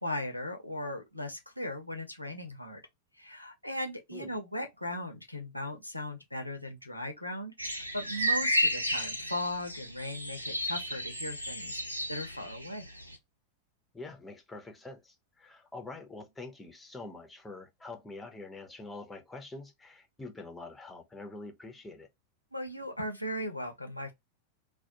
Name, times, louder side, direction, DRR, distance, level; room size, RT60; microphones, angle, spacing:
voice 1, 0.0-2.8 3.2-11.8 12.1-12.9 22.5-24.1, left 1 dB, 90° left, 0.5 m, -38 dB
sound 1, 7.6-13.2, equal, 85° right, 0.4 m, -32 dB
voice 2, 13.9-22.1, left 3 dB, 10° left, 0.5 m, -45 dB
2.3 x 2.1 x 2.7 m
figure-of-eight pair, 90°, 0 cm